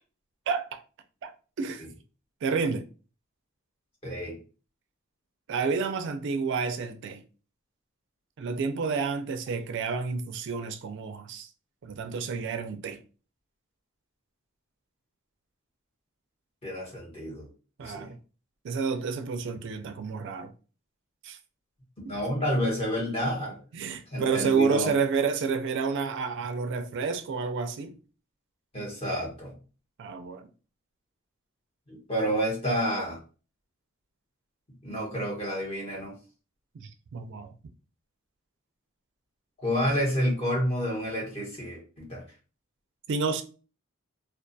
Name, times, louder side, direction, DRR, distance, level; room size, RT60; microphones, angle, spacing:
voice 1, 0.5-0.8 1.2-1.3 1.6-1.9 2.4-2.9 5.5-7.2 8.4-11.5 11.8-13.0 17.8-18.2 18.6-20.5 21.2-21.4 22.0-22.1 23.7-27.9 30.0-30.5 36.7-37.5 43.1-43.4, right 5 dB, 60° right, 0.4 m, -30 dB
voice 2, 4.0-4.4 16.6-17.5 17.8-18.1 22.1-23.6 24.1-24.9 28.7-29.5 31.9-33.2 34.8-36.1 39.6-42.2, equal, 30° left, 1.0 m, -29 dB
2.3 x 2.3 x 2.6 m
head